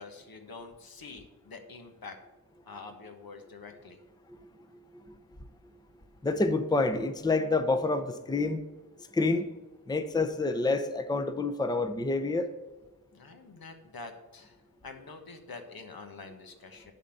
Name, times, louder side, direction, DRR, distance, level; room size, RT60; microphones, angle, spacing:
voice 1, 0.0-2.2 2.7-4.0 13.1-16.9, left 4 dB, 70° left, 5 dB, 1.5 m, -46 dB
voice 2, 6.2-8.6 9.1-9.5 9.9-12.5, left 3 dB, 10° left, 8 dB, 0.6 m, -28 dB
11.0 x 4.2 x 7.8 m, 1.2 s
wide cardioid pair, 100°, 37 cm